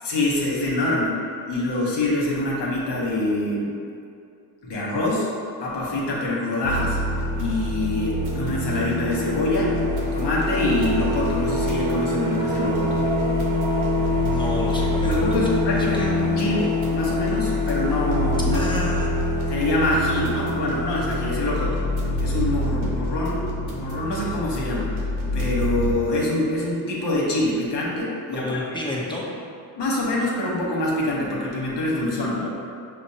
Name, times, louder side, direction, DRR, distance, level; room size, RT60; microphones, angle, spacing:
voice 1, 0.0-3.7 4.6-5.3 5.6-7.0 7.4-9.7 10.1-13.0 15.0-18.7 19.5-21.8 22.2-25.0 25.3-28.8 29.8-32.5, left 2 dB, 60° left, -4 dB, 1.2 m, -25 dB
sound 1, 6.6-25.9, left 1 dB, 80° right, 0.9 m, -25 dB
voice 2, 14.2-15.4 15.8-16.1 18.5-19.1 28.3-29.3, left 1 dB, 10° left, -4 dB, 0.8 m, -30 dB
5.8 x 2.1 x 2.8 m, 2.4 s
supercardioid pair, 70°, 46 cm